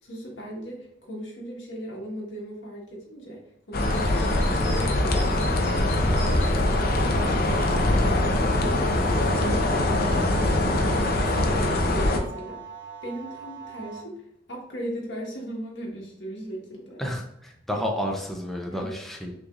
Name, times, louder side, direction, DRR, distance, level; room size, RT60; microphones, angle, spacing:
voice 1, 0.0-3.4 3.7-12.7 13.0-17.0 17.7-17.9 18.7-19.1, right 1 dB, 90° left, -2 dB, 1.5 m, -38 dB
sound 1, 3.7-12.2, left 1 dB, 55° left, 0.6 m, -23 dB
sound 2, 3.8-9.5, left 1 dB, 40° left, 1.1 m, -39 dB
sound 3, 9.0-14.0, right 7 dB, 30° right, 1.7 m, -41 dB
voice 2, 17.0-19.3, equal, ahead, 0 dB, 0.6 m, -31 dB
6.1 x 3.2 x 2.4 m, 0.77 s
head